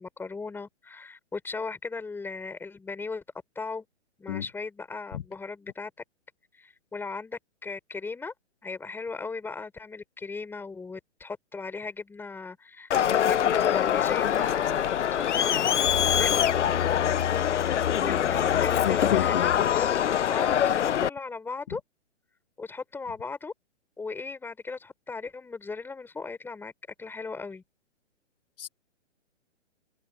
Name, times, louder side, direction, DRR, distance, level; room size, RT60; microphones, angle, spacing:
voice 1, 0.0-3.2 3.5-3.8 4.2-5.9 6.6-8.3 8.6-17.1 17.4-19.9 20.3-21.8 22.6-23.5 24.0-26.7 27.0-27.6, left 4 dB, 5° left, 4.8 m, -38 dB
Crowd, 12.9-21.1, left 9 dB, 70° left, 0.8 m, -24 dB
voice 2, 18.8-19.7 28.6-28.7, left 12 dB, 50° left, 1.7 m, -29 dB
hypercardioid pair, 150°, 37 cm